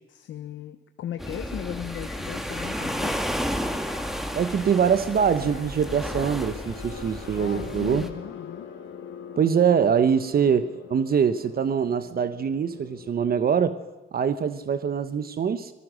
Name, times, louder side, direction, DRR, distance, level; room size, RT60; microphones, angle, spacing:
voice 1, 0.1-3.2 7.3-8.7, left 10 dB, 70° left, 9 dB, 1.1 m, -37 dB
sound 1, 1.2-13.5, left 7 dB, 85° left, 3.6 m, -43 dB
sound 2, 1.2-8.1, equal, ahead, 2.1 m, -32 dB
voice 2, 4.3-8.1 9.4-13.8 14.1-15.7, right 7 dB, 50° right, 12 dB, 1.1 m, -23 dB
25.0 x 18.0 x 6.3 m, 1.1 s
cardioid pair, 90°, 20 cm